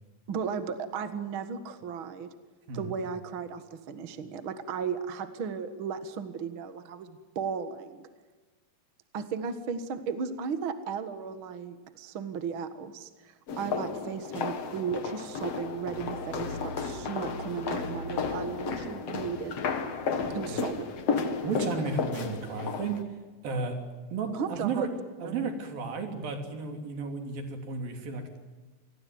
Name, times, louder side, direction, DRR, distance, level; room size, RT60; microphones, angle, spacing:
voice 1, 0.3-2.3 2.7-8.0 9.1-19.6 20.3-21.1 24.3-24.9 25.2-25.3, right 6 dB, 50° right, 10 dB, 1.6 m, -35 dB
sound 1, 13.5-23.0, left 5 dB, 50° left, 2.5 m, -33 dB
voice 2, 21.4-23.0 23.4-23.8 24.1-24.9 25.2-28.4, right 4 dB, 65° right, 5 dB, 4.9 m, -33 dB
28.0 x 20.0 x 9.4 m, 1.3 s
omnidirectional pair, 4.4 m